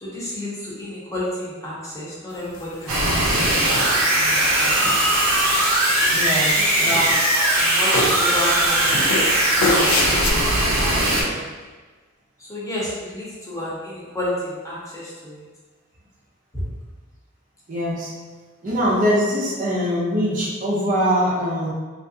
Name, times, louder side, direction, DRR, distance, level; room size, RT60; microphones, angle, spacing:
voice 1, 0.0-3.7 4.1-4.8 6.6-9.3 9.5-10.4 10.8-11.3 12.5-15.4 16.5-16.6, left 1 dB, 15° left, -7 dB, 0.8 m, -31 dB
sound 1, 2.5-3.2 3.7-4.4 4.8-5.4 5.8-6.6 6.9-7.6 7.9-8.4 8.9-10.3, left 2 dB, 90° left, 0.4 m, -27 dB
sound 2, 2.9-11.2, right 1 dB, 80° right, 0.7 m, -19 dB
voice 2, 6.1-7.0 17.7-18.1 18.6-21.7, equal, 40° right, -4 dB, 0.5 m, -22 dB
3.3 x 2.4 x 2.7 m, 1.4 s
head